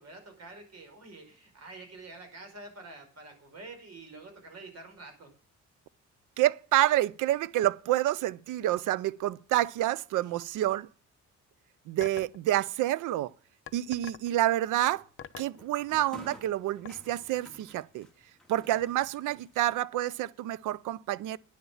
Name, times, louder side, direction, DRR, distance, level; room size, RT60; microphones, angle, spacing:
voice 1, 0.0-5.3 10.2-10.3, right 2 dB, 55° right, 5.2 m, -47 dB
voice 2, 6.4-10.9 11.9-13.3 13.7-15.0 15.4-18.1 18.5-21.4, right 14 dB, 85° right, 0.6 m, -28 dB
sound 1, 12.0-12.4 13.7-14.3 15.2-15.6 16.8-16.9, left 8 dB, 45° left, 0.8 m, -42 dB
sound 2, 14.5-19.8, equal, ahead, 2.4 m, -52 dB
10.0 x 7.2 x 7.1 m
cardioid pair, 90°, 30 cm